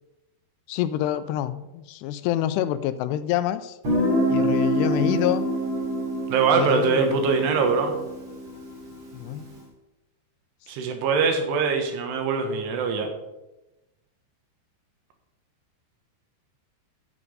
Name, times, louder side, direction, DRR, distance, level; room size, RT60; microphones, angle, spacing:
voice 1, 0.7-3.8 4.3-5.4 6.5-7.3 9.1-9.5, left 12 dB, 85° left, 13 dB, 2.6 m, -27 dB
Guitar, 3.8-9.4, equal, 40° right, 4.5 m, -26 dB
voice 2, 6.3-7.9 10.7-13.1, right 5 dB, 75° right, 5 dB, 3.3 m, -23 dB
8.3 x 8.2 x 5.4 m, 0.97 s
omnidirectional pair, 4.9 m